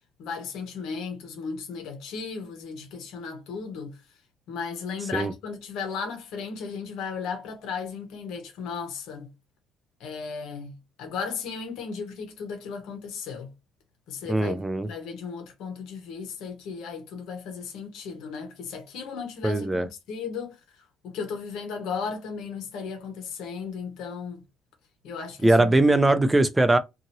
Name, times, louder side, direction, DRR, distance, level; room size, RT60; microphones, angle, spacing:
voice 1, 0.2-4.0 4.5-9.3 10.0-13.5 14.1-20.6 21.0-24.4 25.0-25.7, left 5 dB, 75° left, 1.0 m, -35 dB
voice 2, 14.3-14.9 19.4-19.9 25.4-26.8, right 2 dB, 10° right, 0.4 m, -20 dB
2.8 x 2.6 x 2.8 m
cardioid pair, 160°, 0 cm